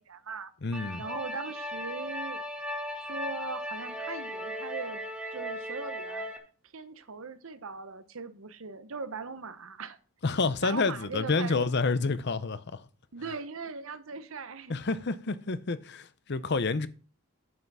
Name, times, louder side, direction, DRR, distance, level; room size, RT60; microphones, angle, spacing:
voice 1, 0.0-0.5 1.0-2.4 2.9-5.0 5.3-6.3 6.7-10.0 10.6-11.7 13.1-14.8, right 4 dB, 65° right, 0.9 m, -39 dB
voice 2, 0.6-1.0 10.2-12.8 14.7-16.9, left 3 dB, 50° left, 0.7 m, -29 dB
sound 1, 0.7-6.4, equal, 5° right, 1.5 m, -37 dB
9.6 x 5.7 x 6.1 m
head